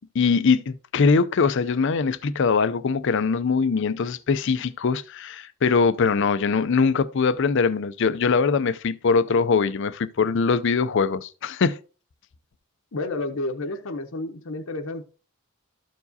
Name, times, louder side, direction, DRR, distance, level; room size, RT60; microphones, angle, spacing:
voice 1, 0.1-11.8, left 5 dB, 60° left, 0.5 m, -22 dB
voice 2, 12.9-15.1, left 2 dB, 80° left, 0.8 m, -30 dB
13.0 x 4.7 x 2.7 m
head